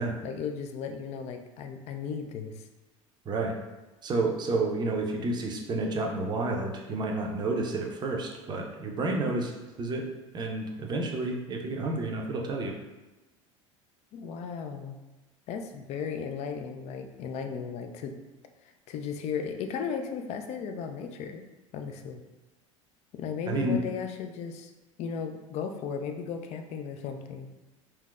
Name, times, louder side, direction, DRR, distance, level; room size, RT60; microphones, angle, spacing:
voice 1, 0.2-2.7 14.1-15.0 15.5-18.2 18.6-21.4 21.7-22.2 23.1-24.7 25.0-27.5, left 6 dB, 40° left, 6 dB, 0.4 m, -36 dB
voice 2, 4.0-10.1 10.3-12.7 23.5-23.8, right 2 dB, 25° right, 1 dB, 0.5 m, -30 dB
3.6 x 2.7 x 2.3 m, 1.1 s
figure-of-eight pair, 70°, 17 cm